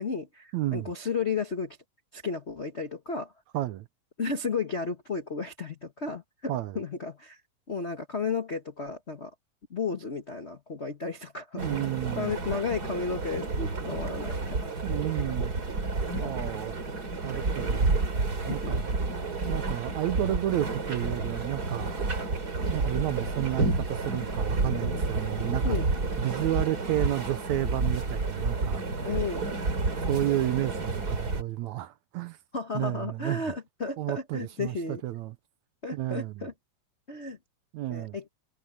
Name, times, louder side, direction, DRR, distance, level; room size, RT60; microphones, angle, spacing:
voice 1, 0.0-1.8 2.1-3.3 4.2-7.4 7.7-9.3 9.7-11.6 12.1-14.6 16.2-16.3 18.5-18.7 25.6-25.8 29.0-29.5 32.5-35.0 35.8-36.5 37.1-37.4 37.9-38.2, left 4 dB, 60° left, 0.6 m, -33 dB
voice 2, 0.5-0.9 3.5-3.9 6.5-6.8 11.5-12.3 14.8-15.5 16.2-16.7 17.2-17.9 18.5-18.9 19.5-22.0 22.7-25.8 26.2-29.2 30.0-32.4 32.7-33.4 34.0-35.3 35.9-36.5 37.7-38.2, right 14 dB, 75° right, 1.9 m, -31 dB
sound 1, 11.6-31.4, right 3 dB, 30° right, 3.3 m, -30 dB
omnidirectional pair, 3.7 m